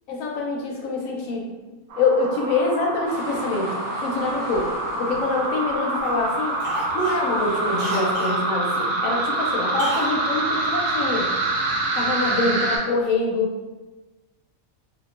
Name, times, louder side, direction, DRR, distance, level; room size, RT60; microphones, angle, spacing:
voice 1, 0.1-1.5 2.0-3.7 4.0-4.7 5.0-11.3 11.9-13.5, left 3 dB, 75° left, 0 dB, 0.9 m, -25 dB
sound 1, 1.9-12.8, right 2 dB, 80° right, 1.1 m, -26 dB
sound 2, 3.0-8.1, equal, 55° left, 0.5 m, -40 dB
Cough, 4.4-5.7 6.0-6.2 6.6-8.4 9.8-10.2 10.4-10.5, equal, 50° right, 0.8 m, -34 dB
2.9 x 2.0 x 2.3 m, 1.2 s
omnidirectional pair, 1.5 m